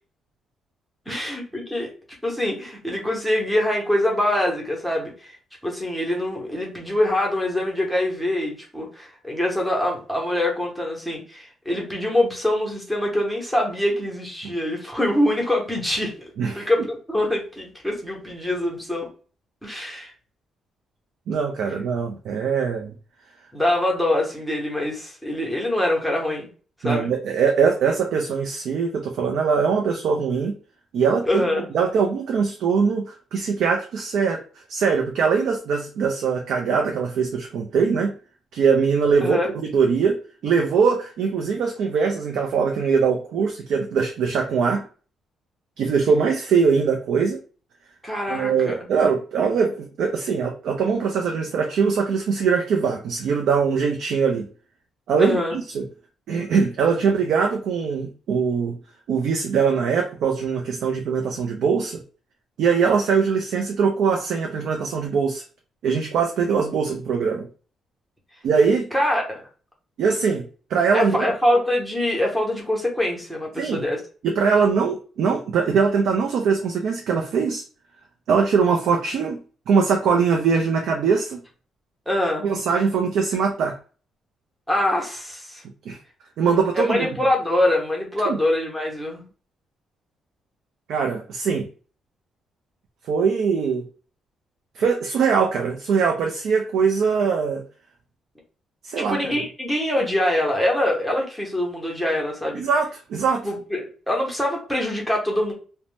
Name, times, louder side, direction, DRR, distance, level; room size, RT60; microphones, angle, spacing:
voice 1, 1.1-1.9 2.2-5.3 5.6-16.1 16.5-19.1 19.6-20.1 23.5-26.5 26.8-27.1 31.2-31.7 39.2-39.5 48.0-48.7 55.2-55.6 68.9-69.5 70.9-74.0 82.1-82.4 84.7-85.6 86.7-89.2 99.0-102.6 103.4-105.5, left 1 dB, ahead, -1 dB, 0.8 m, -24 dB
voice 2, 16.4-16.7 21.3-22.9 26.8-30.5 30.9-31.4 31.7-34.4 34.7-38.1 38.5-40.2 40.4-44.8 45.8-47.4 48.3-54.5 55.1-55.8 56.3-58.8 59.1-62.0 62.6-65.4 65.8-67.5 68.4-68.9 70.0-71.3 73.6-73.8 74.2-77.6 78.3-79.4 79.7-81.4 82.4-83.7 85.9-86.0 86.4-87.1 88.3-88.4 90.9-91.7 93.0-93.8 94.8-97.6 98.8-99.4 102.5-103.5, right 5 dB, 65° right, 2 dB, 0.4 m, -22 dB
2.6 x 2.0 x 3.1 m, 0.38 s
cardioid pair, 175°, 0 cm